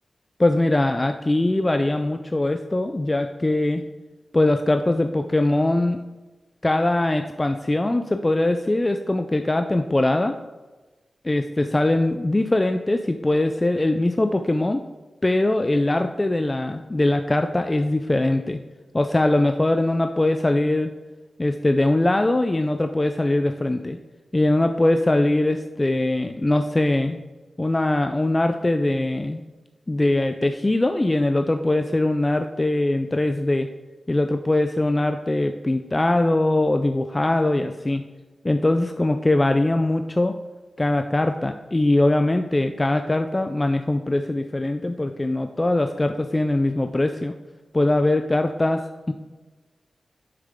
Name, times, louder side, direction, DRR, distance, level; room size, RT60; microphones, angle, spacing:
voice 1, 0.4-3.8 4.3-6.0 6.6-10.4 11.2-14.8 15.2-18.6 18.9-20.9 21.4-24.0 24.3-27.2 27.6-29.4 29.9-33.7 34.1-38.0 38.4-40.4 40.8-47.3 47.7-49.1, left 2 dB, 25° left, 7 dB, 0.4 m, -21 dB
7.4 x 6.6 x 3.6 m, 1.2 s
wide cardioid pair, 80°, 0 cm